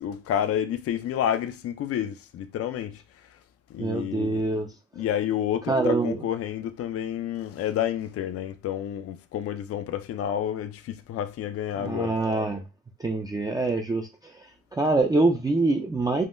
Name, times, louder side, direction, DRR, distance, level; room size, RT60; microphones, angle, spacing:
voice 1, 0.0-3.0 3.7-4.4 5.0-12.1, left 10 dB, 50° left, 0.4 m, -29 dB
voice 2, 3.8-4.7 5.7-6.2 11.8-12.6 13.0-14.1 14.7-16.2, right 3 dB, 15° right, 0.4 m, -24 dB
3.6 x 2.1 x 2.5 m
cardioid pair, 90°, 30 cm